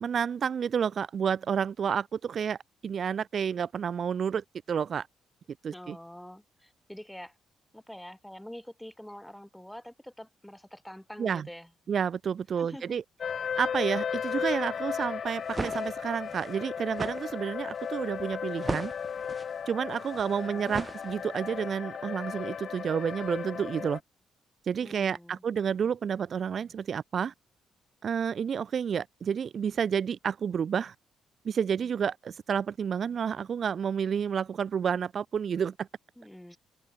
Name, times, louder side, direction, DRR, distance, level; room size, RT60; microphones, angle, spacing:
voice 1, 0.0-2.6 2.8-5.1 5.6-6.0 11.2-11.5 11.9-13.0 13.6-18.9 19.7-24.0 24.6-27.3 28.0-30.9 31.4-35.9, right 7 dB, 50° right, 0.6 m, -30 dB
voice 2, 5.7-7.3 7.7-11.7 12.6-13.0 20.4-20.7 24.8-25.4 36.2-36.6, equal, 5° left, 2.7 m, -46 dB
sound 1, 13.2-24.0, left 7 dB, 50° left, 0.8 m, -35 dB
sound 2, 15.3-21.5, right 3 dB, 25° right, 1.1 m, -39 dB
cardioid pair, 90°, 0 cm